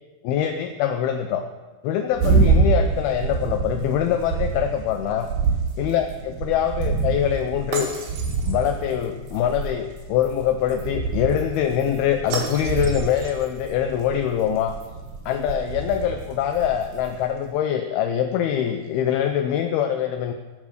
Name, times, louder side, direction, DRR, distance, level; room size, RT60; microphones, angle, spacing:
voice 1, 0.2-1.4 1.8-5.3 5.8-8.1 8.4-14.7 15.3-20.3, left 9 dB, 80° left, 6 dB, 2.5 m, -24 dB
sound 1, 2.1-17.3, right 4 dB, 60° right, 3.7 m, -26 dB
17.0 x 7.2 x 6.5 m, 1.3 s
omnidirectional pair, 4.7 m